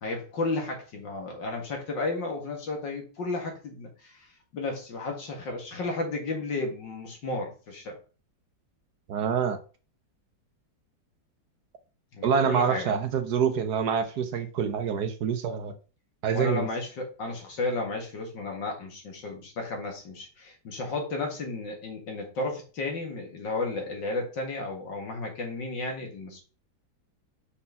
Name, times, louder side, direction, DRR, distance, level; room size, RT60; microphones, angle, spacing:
voice 1, 0.0-8.0 12.1-12.9 16.3-26.4, left 3 dB, 70° left, 1 dB, 2.6 m, -33 dB
voice 2, 9.1-9.6 12.2-15.7 16.2-16.7, right 7 dB, 65° right, 8 dB, 1.2 m, -26 dB
5.6 x 4.3 x 5.5 m, 0.35 s
omnidirectional pair, 2.1 m